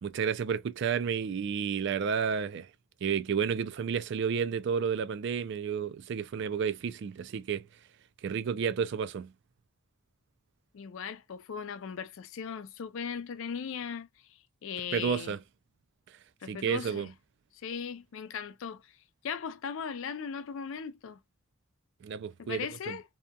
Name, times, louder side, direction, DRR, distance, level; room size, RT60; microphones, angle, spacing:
voice 1, 0.0-2.7 3.0-7.6 8.2-9.3 14.9-15.4 16.5-17.1 22.0-23.0, right 6 dB, 55° right, 0.3 m, -31 dB
voice 2, 10.7-14.1 14.6-15.3 16.4-17.1 17.6-18.9 19.2-21.2 22.4-23.0, left 7 dB, 60° left, 0.4 m, -38 dB
2.8 x 2.3 x 2.2 m
head